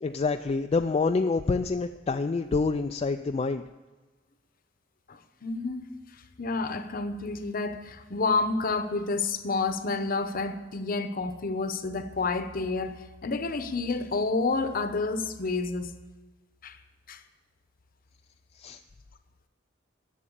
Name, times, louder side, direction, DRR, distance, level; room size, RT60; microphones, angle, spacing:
voice 1, 0.0-3.6 18.6-18.8, left 4 dB, 30° left, 6 dB, 0.3 m, -27 dB
voice 2, 5.1-5.8 6.4-12.9 13.2-15.9 16.6-16.8 17.1-17.2, left 3 dB, 50° left, 10 dB, 0.8 m, -29 dB
11.0 x 7.6 x 8.6 m, 1.3 s
head